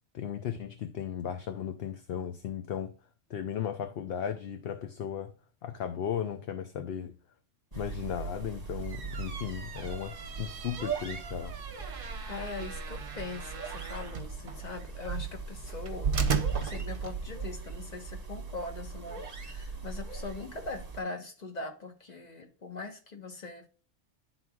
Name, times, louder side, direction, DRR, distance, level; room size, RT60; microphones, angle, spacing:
voice 1, 0.1-3.0 3.3-5.3 5.6-7.2 7.7-11.6, left 9 dB, 60° left, 0.7 m, -36 dB
sound 1, 7.7-21.0, right 4 dB, 35° right, 1.1 m, -41 dB
sound 2, 8.7-17.5, right 6 dB, 55° right, 0.9 m, -36 dB
voice 2, 12.3-16.1 16.6-23.7, left 3 dB, 35° left, 1.2 m, -41 dB
11.0 x 4.0 x 2.3 m
omnidirectional pair, 1.2 m